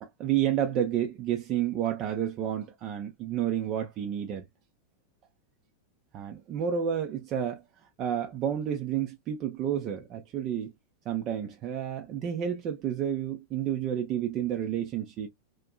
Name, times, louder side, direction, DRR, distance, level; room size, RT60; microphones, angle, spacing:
voice 1, 0.0-4.4 6.1-7.6 8.0-10.7 11.1-15.3, right 9 dB, 35° right, 0.5 m, -30 dB
2.5 x 2.1 x 2.2 m
figure-of-eight pair, 90°, 0 cm